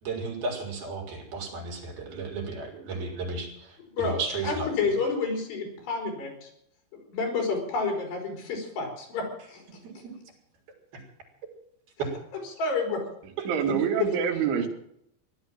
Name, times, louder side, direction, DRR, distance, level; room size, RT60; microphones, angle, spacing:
voice 1, 0.0-5.0 9.8-10.1 10.9-11.0 12.0-12.1, right 3 dB, 55° right, 0 dB, 5.5 m, -34 dB
voice 2, 3.9-6.5 6.9-9.6 12.6-13.0, left 4 dB, 65° left, 2 dB, 6.1 m, -30 dB
voice 3, 13.2-14.7, right 7 dB, 85° right, 2 dB, 4.5 m, -26 dB
16.5 x 12.0 x 7.4 m, 0.72 s
omnidirectional pair, 5.2 m